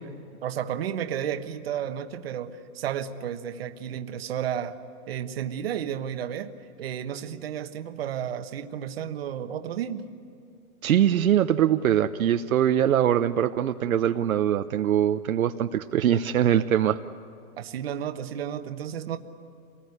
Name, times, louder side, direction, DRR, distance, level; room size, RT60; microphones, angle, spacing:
voice 1, 0.4-4.8 5.1-6.5 6.8-10.1 17.6-19.2, right 9 dB, 40° right, 7 dB, 1.4 m, -32 dB
voice 2, 10.8-17.0, right 10 dB, 70° right, 7 dB, 0.9 m, -22 dB
28.0 x 19.5 x 9.7 m, 2.6 s
hypercardioid pair, 170°, 44 cm